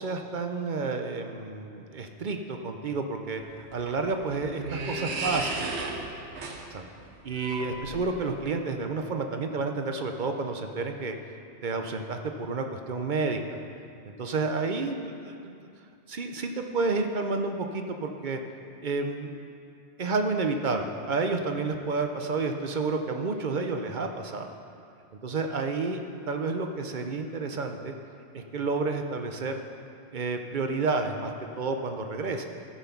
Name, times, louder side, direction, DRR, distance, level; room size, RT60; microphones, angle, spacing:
voice 1, 0.0-3.4 3.7-5.5 6.7-6.9 7.2-11.2 11.6-13.6 14.0-15.6 16.1-18.4 18.8-19.4 20.0-24.5 25.2-26.0 26.3-27.9 28.3-29.6 30.1-32.4, right 3 dB, 50° right, 5 dB, 0.8 m, -30 dB
sound 1, 3.4-8.4, right 3 dB, 75° right, 1.2 m, -35 dB
14.0 x 5.7 x 5.9 m, 2.5 s
omnidirectional pair, 1.2 m